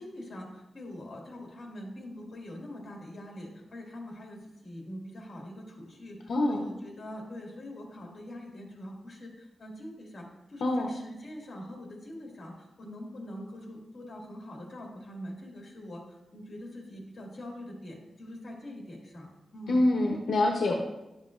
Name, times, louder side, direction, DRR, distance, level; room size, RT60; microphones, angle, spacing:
voice 1, 0.0-6.2 6.5-19.9, left 1 dB, 45° left, -1 dB, 2.0 m, -43 dB
voice 2, 6.3-6.6 10.6-10.9 19.7-20.7, left 2 dB, 80° left, 0 dB, 0.9 m, -25 dB
10.5 x 7.3 x 2.5 m, 0.96 s
wide cardioid pair, 140°, 0 cm